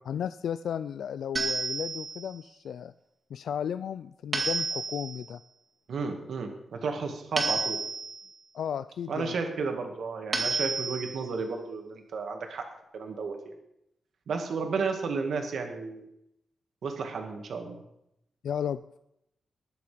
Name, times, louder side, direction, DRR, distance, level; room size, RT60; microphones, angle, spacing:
voice 1, 0.0-2.9 3.3-5.4 8.5-9.3 18.4-18.8, left 8 dB, 85° left, 13 dB, 0.3 m, -34 dB
sound 1, 1.4-2.3 4.3-5.2 7.4-8.3 10.3-11.2, right 3 dB, 30° right, 2.2 m, -30 dB
voice 2, 5.9-7.8 9.1-12.7 12.9-13.5 14.3-16.1 16.8-17.8, right 4 dB, 65° right, 4 dB, 2.0 m, -33 dB
20.5 x 6.9 x 5.1 m, 0.80 s
wide cardioid pair, 165°, 0 cm